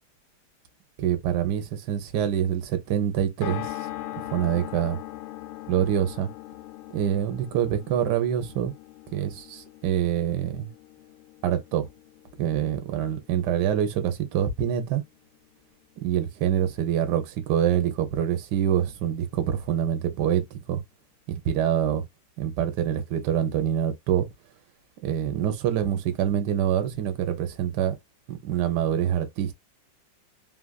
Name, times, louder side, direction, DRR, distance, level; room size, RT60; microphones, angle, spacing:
voice 1, 1.0-3.7 4.3-5.0 5.7-6.3 6.9-8.7 9.1-10.7 11.4-11.9 12.4-15.0 16.0-20.8 21.3-22.0 22.4-24.3 25.0-27.9 28.3-29.6, right 10 dB, 65° right, 1.1 m, -25 dB
sound 1, 3.4-15.6 15.9-16.0 16.2-16.3, left 15 dB, 90° left, 1.5 m, -41 dB
3.3 x 2.4 x 2.2 m
omnidirectional pair, 2.2 m